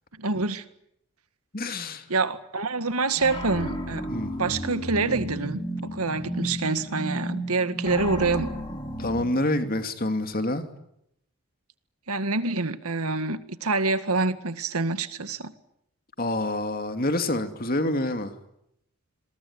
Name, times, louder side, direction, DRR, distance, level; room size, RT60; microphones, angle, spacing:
voice 1, 0.2-0.6 2.1-4.1 4.4-5.6 5.9-8.5 12.1-15.5, right 3 dB, 85° right, 1.9 m, -26 dB
voice 2, 1.5-2.0 4.1-4.3 9.0-10.6 16.2-18.3, left 1 dB, 40° left, 2.7 m, -27 dB
sound 1, 3.2-9.2, equal, 20° left, 5.2 m, -33 dB
28.0 x 22.0 x 9.8 m
head